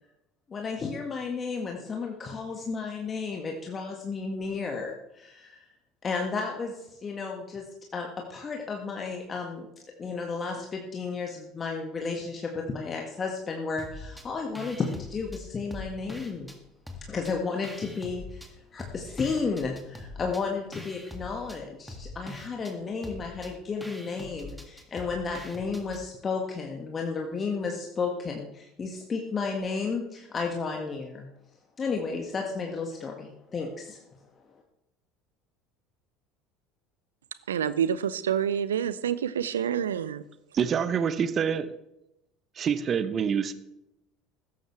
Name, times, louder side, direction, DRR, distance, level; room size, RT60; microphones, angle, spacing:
voice 1, 0.5-5.6 6.0-9.7 10.0-16.5 17.1-31.3 31.8-34.0 34.5-34.6, left 4 dB, 30° left, 1 dB, 1.8 m, -33 dB
sound 1, 13.8-14.3 14.6-16.6 16.9-18.5 18.8-26.0, left 1 dB, ahead, 2.2 m, -44 dB
voice 2, 37.5-40.2, right 8 dB, 75° right, 16 dB, 0.6 m, -27 dB
voice 3, 40.5-41.7 42.5-43.5, right 7 dB, 35° right, 14 dB, 0.9 m, -26 dB
16.5 x 13.5 x 3.3 m, 0.88 s
figure-of-eight pair, 65°, 0 cm